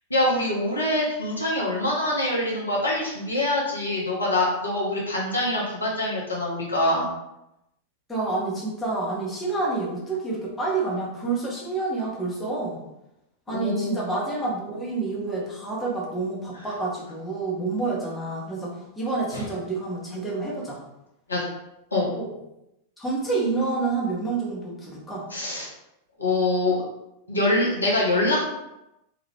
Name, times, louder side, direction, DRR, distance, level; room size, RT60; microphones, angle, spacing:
voice 1, 0.1-7.1 13.5-14.0 19.3-19.4 21.3-21.4 21.9-22.1 25.3-25.7 26.2-26.8 27.3-28.4, left 1 dB, 80° left, -4 dB, 0.8 m, -24 dB
voice 2, 8.1-12.8 13.5-20.8 22.1-22.3 23.0-25.3, right 3 dB, 10° left, -5 dB, 0.9 m, -28 dB
2.8 x 2.4 x 3.3 m, 0.88 s
figure-of-eight pair, 90°, 0 cm